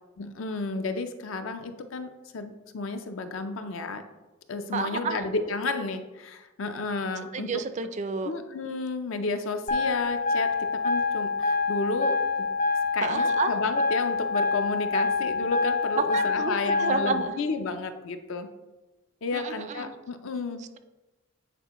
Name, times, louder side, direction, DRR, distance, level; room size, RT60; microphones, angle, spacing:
voice 1, 0.2-4.0 4.5-7.6 8.2-12.5 12.9-18.5 19.2-20.6, left 3 dB, 75° left, 8 dB, 0.5 m, -32 dB
voice 2, 4.7-5.2 7.3-8.3 13.0-13.5 16.1-17.3 19.3-19.9, right 5 dB, 35° right, 10 dB, 0.3 m, -31 dB
sound 1, 9.7-17.3, left 4 dB, 40° left, 0.7 m, -26 dB
9.0 x 4.2 x 3.0 m, 1.2 s
head